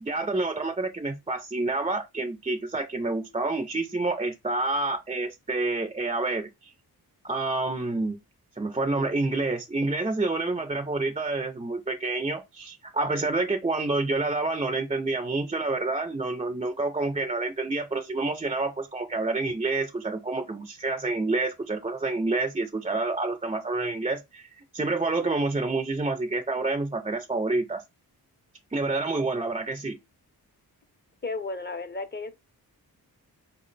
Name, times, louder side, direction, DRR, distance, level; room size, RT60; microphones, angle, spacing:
voice 1, 0.0-6.7 7.2-8.2 8.6-24.5 24.7-27.8 28.7-30.0, right 3 dB, 15° right, 0.4 m, -28 dB
voice 2, 31.2-32.4, left 3 dB, 30° left, 0.6 m, -33 dB
4.2 x 2.1 x 3.8 m
wide cardioid pair, 105°, 38 cm